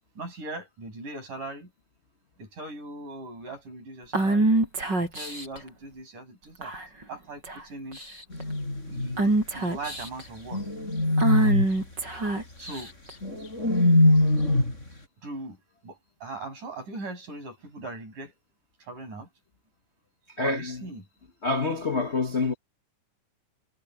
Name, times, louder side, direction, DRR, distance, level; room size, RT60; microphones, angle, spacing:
voice 1, 0.2-1.7 2.4-4.5 5.1-6.7 7.1-8.0 8.9-10.6 12.6-12.9 15.2-15.6 15.8-18.3 18.8-19.3 20.4-21.0, right 2 dB, 70° right, 9.3 m, -39 dB
Female speech woman speaking / Whispering, 4.1-5.6 6.6-7.0 7.4-7.6 7.9-8.4 9.2-10.3 11.2-13.1, right 2 dB, 30° right, 8.0 m, -25 dB
sound 1, 8.3-9.2 10.5-11.8 13.2-14.8, left 2 dB, 20° left, 6.0 m, -22 dB
voice 2, 20.4-20.8 21.4-22.5, left 3 dB, 80° left, 0.6 m, -26 dB
omnidirectional pair, 3.7 m